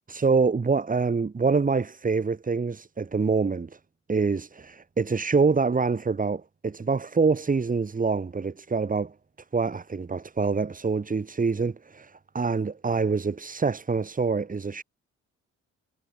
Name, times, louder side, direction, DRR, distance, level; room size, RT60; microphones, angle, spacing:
voice 1, 0.1-3.8 4.1-9.1 9.5-14.8, right 4 dB, 25° right, 2.2 m, -25 dB
cardioid pair, 90°, 30 cm